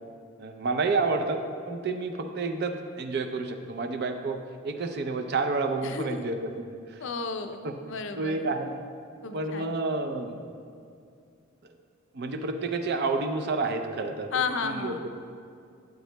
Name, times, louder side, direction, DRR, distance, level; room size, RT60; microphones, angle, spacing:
voice 1, 0.4-1.4 1.7-6.5 6.9-7.0 7.6-7.8 8.2-8.8 9.3-10.4 11.6-11.7 12.1-15.1, right 3 dB, 50° right, 6 dB, 0.5 m, -30 dB
voice 2, 5.8-6.3 7.0-8.4 9.2-9.7 14.3-15.0, left 5 dB, 60° left, 7 dB, 0.5 m, -33 dB
11.5 x 7.9 x 2.2 m, 2.4 s
head